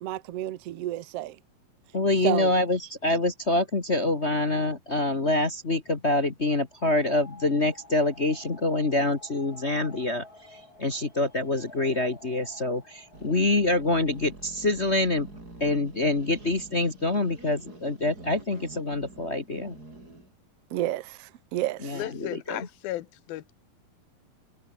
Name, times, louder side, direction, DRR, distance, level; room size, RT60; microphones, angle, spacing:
voice 1, 0.0-1.4 2.2-2.5 20.7-22.0, right 14 dB, 75° right, 1.4 m, -31 dB
voice 2, 1.9-10.2 10.8-15.3 15.6-19.8 21.8-22.7, left 2 dB, 40° left, 0.9 m, -26 dB
sound 1, 6.8-14.4, left 2 dB, 25° left, 6.2 m, -51 dB
sound 2, 13.1-20.3, right 2 dB, 25° right, 6.2 m, -47 dB
voice 3, 21.9-23.5, left 15 dB, 80° left, 2.9 m, -35 dB
omnidirectional pair, 4.3 m